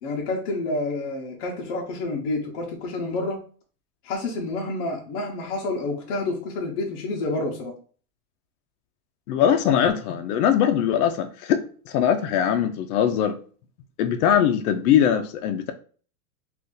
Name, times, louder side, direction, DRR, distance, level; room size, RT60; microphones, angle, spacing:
voice 1, 0.0-3.4 4.0-7.7, left 2 dB, 40° left, -1 dB, 0.7 m, -29 dB
voice 2, 9.3-13.4 14.0-15.7, left 9 dB, 75° left, 6 dB, 0.5 m, -21 dB
2.6 x 2.5 x 3.7 m, 0.41 s
supercardioid pair, 175°, 45 cm